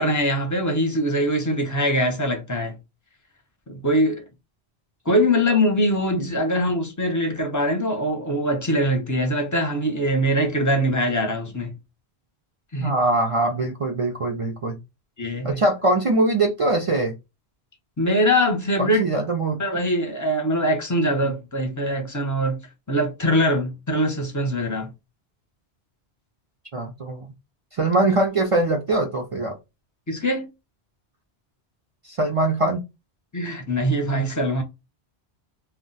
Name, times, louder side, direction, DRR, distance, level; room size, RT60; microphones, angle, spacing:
voice 1, 0.0-2.7 3.7-4.2 5.1-11.8 12.7-12.9 15.2-15.6 18.0-19.0 19.6-22.6 22.9-24.9 30.1-30.5 33.3-34.6, equal, 25° left, 0.5 m, -22 dB
voice 2, 12.8-14.8 15.4-17.1 18.8-19.6 26.7-27.3 27.7-29.6 32.0-32.8, right 2 dB, 60° right, 0.3 m, -22 dB
2.2 x 2.1 x 3.8 m
omnidirectional pair, 1.1 m